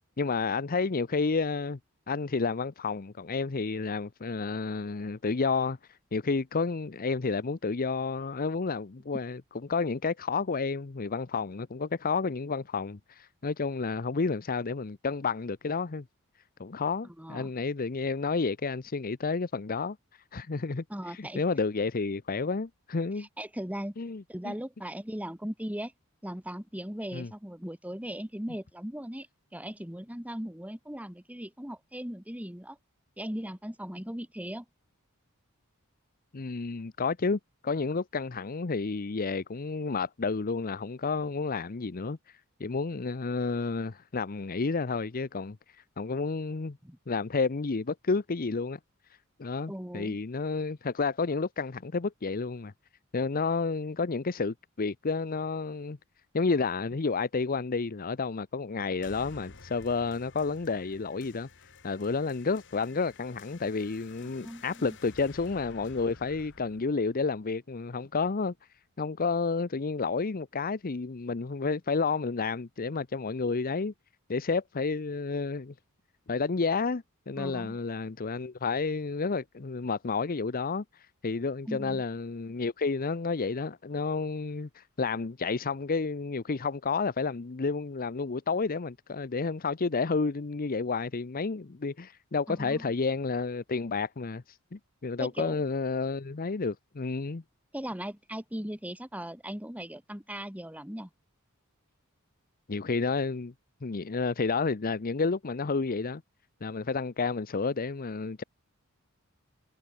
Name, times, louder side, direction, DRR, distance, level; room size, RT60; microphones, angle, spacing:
voice 1, 0.2-1.8 2.1-5.8 6.1-16.0 16.6-20.0 20.3-20.8 21.1-23.3 24.0-24.6 27.1-27.3 36.3-42.2 42.6-45.6 46.0-46.8 47.1-48.8 49.4-52.7 53.1-56.0 56.3-61.5 61.8-68.5 69.0-73.9 74.3-75.7 76.3-80.8 81.2-94.4 94.7-97.4 102.7-103.5 103.8-106.2 106.6-108.4, left 4 dB, 45° left, 0.7 m, -30 dB
voice 2, 17.2-17.5 20.9-21.4 23.2-24.0 24.3-25.9 26.2-29.3 29.5-32.8 33.2-34.6 46.8-47.0 49.7-50.2 64.2-64.9 77.4-77.8 81.7-82.0 92.5-92.8 95.2-95.6 97.7-101.1, equal, 5° right, 2.6 m, -38 dB
sound 1, 59.0-68.0, left 3 dB, 60° left, 3.3 m, -53 dB
head